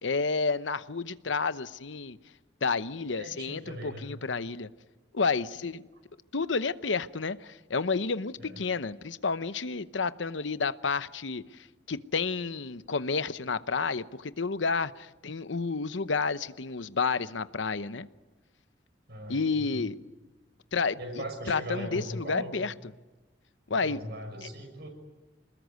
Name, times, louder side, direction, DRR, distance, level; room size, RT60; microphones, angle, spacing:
voice 1, 0.0-2.2 2.6-4.7 5.1-5.9 6.3-18.1 19.3-20.0 20.7-21.0 21.5-22.7 23.7-24.0 24.4-24.5, left 4 dB, 85° left, 0.9 m, -30 dB
voice 2, 3.2-4.1 8.4-8.6 19.1-19.8 21.0-22.6 23.7-24.9, equal, 60° right, 6.2 m, -39 dB
28.0 x 20.5 x 9.4 m
head